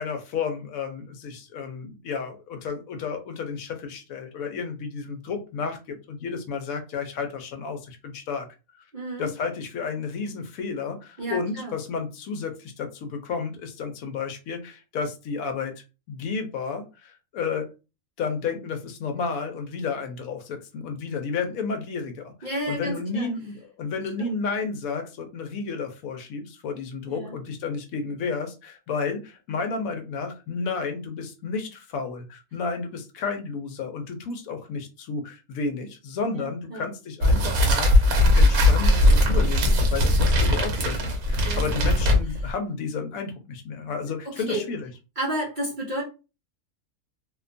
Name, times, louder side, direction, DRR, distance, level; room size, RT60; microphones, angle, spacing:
voice 1, 0.0-8.5 9.2-15.7 16.1-17.7 18.2-22.3 22.7-38.1 38.4-44.9, left 5 dB, 75° left, 6 dB, 1.0 m, -32 dB
voice 2, 8.9-9.3 11.2-11.8 22.4-23.3 24.2-24.3 27.1-27.3 36.3-36.9 41.4-41.7 42.0-42.1 42.4-42.5 44.2-44.6 45.2-46.0, right 1 dB, 45° right, -3 dB, 0.6 m, -32 dB
sound 1, 37.2-42.5, left 1 dB, 80° right, 1.2 m, -19 dB
2.7 x 2.2 x 2.5 m, 0.30 s
omnidirectional pair, 1.5 m